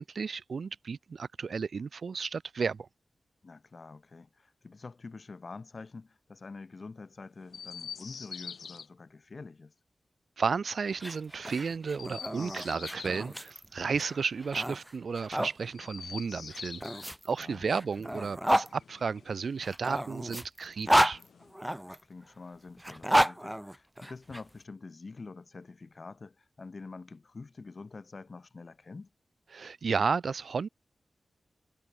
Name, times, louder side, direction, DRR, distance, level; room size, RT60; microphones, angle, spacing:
voice 1, 0.0-2.9 10.4-21.2 29.5-30.7, right 5 dB, 65° right, 1.1 m, -33 dB
voice 2, 3.4-9.7 17.4-17.9 21.8-29.1, left 4 dB, 40° left, 4.6 m, -47 dB
Chirp tweet, 7.5-8.9 11.9-13.3 15.7-17.1 18.5-19.6 20.7-21.6, left 6 dB, 90° left, 3.1 m, -45 dB
sound 1, 10.9-15.5 16.5-18.7 19.6-22.0 22.8-24.4, right 1 dB, 5° right, 0.9 m, -30 dB
wide cardioid pair, 135°, 0 cm